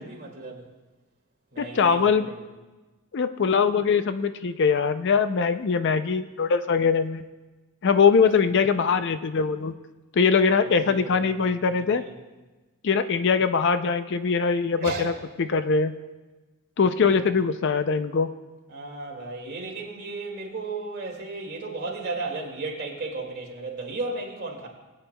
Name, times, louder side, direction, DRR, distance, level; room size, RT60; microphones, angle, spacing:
voice 1, 0.1-0.7 1.5-2.4 10.7-11.2 11.7-12.1 14.8-15.1 18.7-24.7, right 3 dB, 45° right, -1 dB, 2.2 m, -34 dB
voice 2, 1.6-2.3 3.1-7.2 7.8-9.7 10.1-12.0 12.8-15.1 15.4-15.9 16.8-18.3, left 5 dB, 55° left, 10 dB, 0.4 m, -22 dB
20.5 x 8.8 x 2.3 m, 1.2 s
head